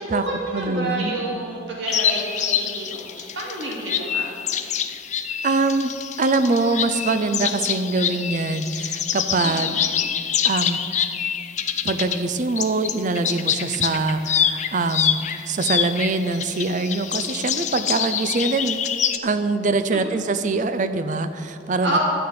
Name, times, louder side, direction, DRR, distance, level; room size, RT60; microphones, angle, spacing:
voice 1, 0.0-4.2 9.4-9.7 19.9-20.2 21.8-22.0, right 1 dB, 85° right, -3 dB, 2.5 m, -29 dB
voice 2, 0.5-1.2 5.4-5.9 6.2-9.8 10.4-10.8 11.8-18.8 19.2-22.0, right 3 dB, 45° right, 10 dB, 0.5 m, -23 dB
sound 1, 1.9-12.2 12.6-19.2, left 8 dB, 40° left, 0.6 m, -26 dB
12.0 x 6.6 x 9.5 m, 2.5 s
head